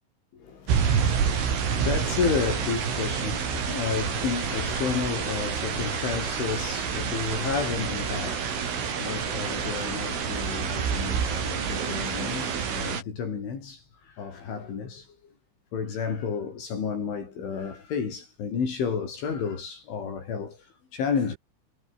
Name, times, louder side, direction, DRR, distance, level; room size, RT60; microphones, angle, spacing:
voice 1, 0.3-15.1 15.7-21.4, left 6 dB, 75° left, 8.1 m, -31 dB
sound 1, 0.7-13.0, right 7 dB, 85° right, 7.6 m, -28 dB
omnidirectional pair, 5.6 m